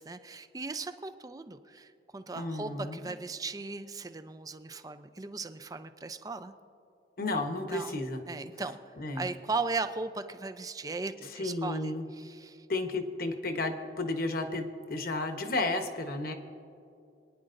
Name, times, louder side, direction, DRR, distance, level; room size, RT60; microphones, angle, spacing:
voice 1, 0.0-6.5 7.7-8.0 8.3-8.8 9.2-12.7, right 3 dB, 20° right, 10 dB, 0.4 m, -37 dB
voice 2, 2.3-3.1 7.2-8.2 9.0-9.3 11.3-12.1 12.7-16.3, left 2 dB, 55° left, 6 dB, 1.0 m, -32 dB
27.0 x 9.9 x 2.6 m, 2.5 s
head